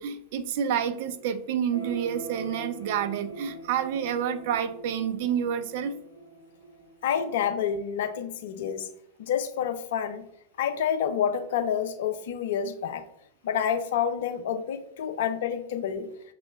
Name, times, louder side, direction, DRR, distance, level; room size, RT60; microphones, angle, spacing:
voice 1, 0.0-5.9, right 8 dB, 50° right, 11 dB, 0.4 m, -29 dB
sound 1, 1.7-7.5, right 2 dB, 75° right, 1.3 m, -43 dB
voice 2, 7.0-8.9 9.2-10.2 10.6-13.1 13.4-16.1, left 8 dB, 55° left, 9 dB, 0.4 m, -28 dB
6.1 x 3.0 x 2.3 m, 0.76 s
figure-of-eight pair, 90°, 0 cm